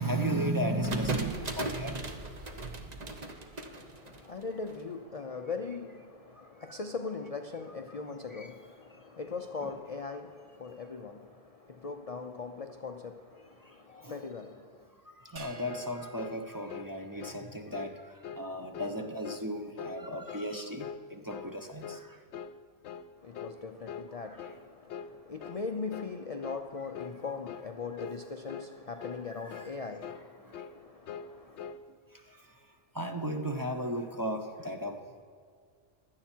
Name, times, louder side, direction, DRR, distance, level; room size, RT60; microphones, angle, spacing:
voice 1, 0.0-2.0 8.4-8.5 13.9-14.2 15.3-18.0 18.3-22.0 29.4-29.9 32.9-35.0, right 1 dB, 20° right, 0.8 m, -35 dB
sound 1, 0.8-4.7, right 3 dB, 35° right, 1.1 m, -37 dB
voice 2, 3.5-14.9 23.2-31.8, left 4 dB, 40° left, 0.5 m, -40 dB
sound 2, 15.4-17.9, right 2 dB, 60° right, 1.6 m, -52 dB
sound 3, 15.7-15.9 16.2-16.4 16.7-16.9 17.2-17.4 17.7-18.0 18.2-18.5 18.7-19.0 19.2-19.5 19.8-20.0 20.3-20.5 20.8-21.0 21.3-21.5 21.8-22.1 22.3-22.6 22.8-23.1 23.3-23.6 23.9-24.1 24.4-24.6 24.9-25.1 25.4-25.6 25.9-26.1 26.4-26.7 26.9-27.2 27.5-27.7 28.0-28.2 28.5-28.7 29.0-29.2 29.5-29.7 30.0-30.3 30.5-30.8 31.1-31.3 31.6-31.8, left 7 dB, 75° left, 0.9 m, -43 dB
16.0 x 11.5 x 4.5 m
omnidirectional pair, 1.2 m